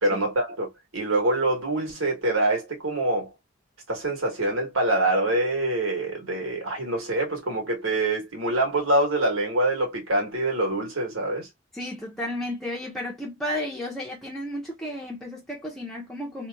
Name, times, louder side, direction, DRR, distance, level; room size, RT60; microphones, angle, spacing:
voice 1, 0.0-3.3 3.9-11.5, right 2 dB, 90° right, 1.5 m, -25 dB
voice 2, 11.7-16.5, left 1 dB, ahead, 0.8 m, -33 dB
2.9 x 2.4 x 2.2 m
head